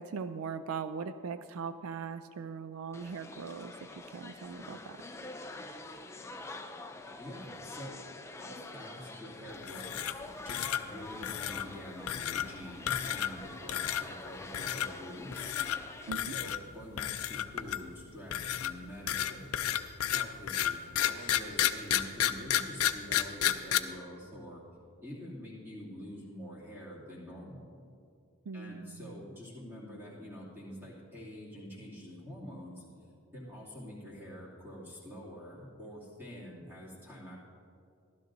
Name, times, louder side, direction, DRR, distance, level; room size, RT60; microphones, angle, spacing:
voice 1, 0.0-5.0 16.1-16.3 28.5-29.2, right 5 dB, 70° right, 11 dB, 0.4 m, -40 dB
sound 1, 2.9-16.1, left 2 dB, 10° left, 0.4 m, -46 dB
voice 2, 7.2-8.0 8.4-10.2 10.4-15.5 16.1-19.6 20.1-24.6 25.0-27.8 28.5-32.8 33.3-37.4, equal, 10° right, -7 dB, 2.5 m, -46 dB
sound 2, 9.6-10.2 10.5-10.8 11.2-11.7 12.1-12.5 12.9-13.4 13.7-14.0 14.5-14.9 15.3-15.8 16.1-16.6 17.0-17.9 18.3-23.8, left 11 dB, 70° left, 0.5 m, -31 dB
15.5 x 12.0 x 2.6 m, 2.5 s
head